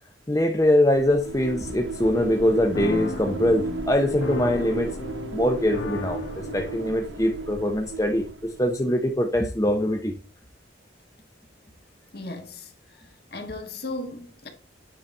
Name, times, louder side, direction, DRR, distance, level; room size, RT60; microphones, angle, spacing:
voice 1, 0.3-4.9 5.3-10.1, left 1 dB, 15° left, 0.6 m, -23 dB
sound 1, 0.9-8.7, right 3 dB, 75° right, 0.6 m, -35 dB
sound 2, 2.1-7.7, left 1 dB, 90° left, 1.3 m, -36 dB
voice 2, 12.1-12.7 13.3-14.5, left 2 dB, 55° left, 1.6 m, -35 dB
9.0 x 4.0 x 4.2 m
head